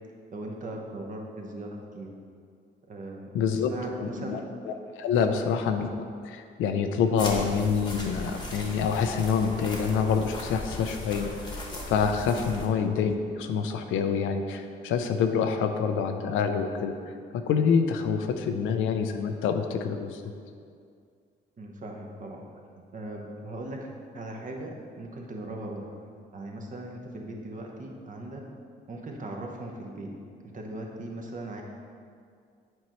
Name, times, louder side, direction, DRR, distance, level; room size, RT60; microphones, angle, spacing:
voice 1, 0.3-2.1 2.9-4.4 5.2-5.3 12.4-12.6 21.6-22.4 22.7-23.9 24.1-25.9 26.3-28.4 28.9-30.1 30.5-31.6, right 1 dB, 40° right, 0 dB, 0.9 m, -39 dB
voice 2, 3.3-3.7 4.0-20.2, left 6 dB, 85° left, 6 dB, 0.5 m, -27 dB
sound 1, 7.2-12.7, left 1 dB, 20° left, 1.1 m, -37 dB
7.7 x 4.4 x 3.0 m, 2.2 s
cardioid pair, 90°, 20 cm